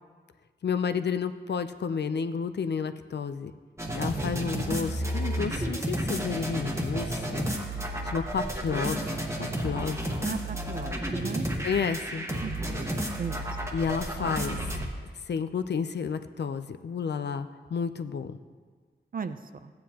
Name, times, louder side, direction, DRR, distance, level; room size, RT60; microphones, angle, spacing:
voice 1, 0.6-3.5 3.9-7.5 8.0-10.0 11.6-12.3 13.7-14.6 15.3-18.4, left 6 dB, 65° left, 11 dB, 0.5 m, -31 dB
sound 1, 3.8-14.9, right 1 dB, 15° right, 1.2 m, -31 dB
voice 2, 10.2-11.5 12.4-12.9 13.2-13.4 19.1-19.7, right 5 dB, 50° right, 11 dB, 0.5 m, -36 dB
15.0 x 9.4 x 2.9 m, 1.5 s
wide cardioid pair, 110°, 19 cm